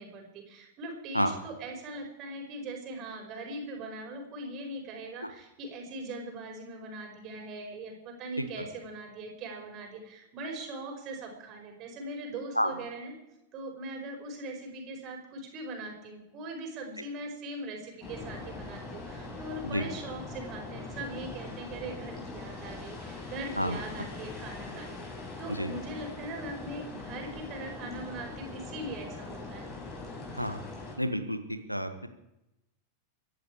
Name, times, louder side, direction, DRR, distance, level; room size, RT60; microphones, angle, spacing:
voice 1, 0.0-13.1 13.5-25.1 25.4-29.7, right 2 dB, 35° right, 2 dB, 5.4 m, -41 dB
sound 1, 18.0-30.9, left 3 dB, 25° left, 6.7 m, -42 dB
voice 2, 31.0-31.4 31.7-32.1, equal, 90° left, 9 dB, 1.5 m, -29 dB
24.5 x 11.0 x 4.9 m, 0.88 s
figure-of-eight pair, 90°, 0 cm